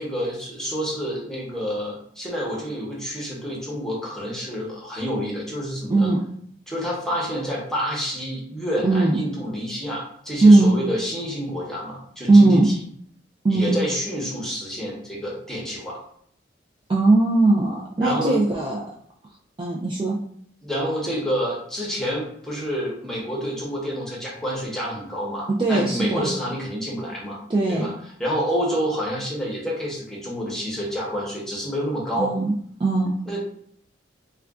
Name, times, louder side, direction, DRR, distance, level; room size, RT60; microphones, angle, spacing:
voice 1, 0.0-6.1 6.7-12.8 13.5-16.0 18.0-18.4 20.6-27.4 27.7-27.9 28.2-32.3 33.3-33.4, equal, 5° left, -4 dB, 0.8 m, -28 dB
voice 2, 8.8-9.2 10.4-10.7 12.3-12.7 13.4-13.8 16.9-18.9 19.6-20.2 25.6-26.3 27.5-27.9 32.2-32.5 32.8-33.1, right 2 dB, 25° right, -3 dB, 0.3 m, -18 dB
2.4 x 2.2 x 3.5 m, 0.65 s
head